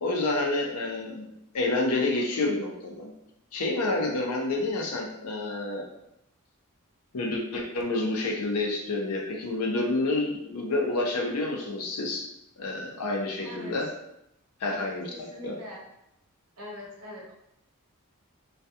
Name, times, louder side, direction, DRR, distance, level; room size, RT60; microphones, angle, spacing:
voice 1, 0.0-3.1 3.5-5.9 7.1-12.3 12.6-13.9 14.6-15.6, left 2 dB, 85° left, 1 dB, 0.5 m, -29 dB
voice 2, 13.4-13.9 14.6-15.8 16.6-17.3, left 1 dB, 85° right, -2 dB, 0.8 m, -42 dB
2.3 x 2.2 x 2.7 m, 0.83 s
head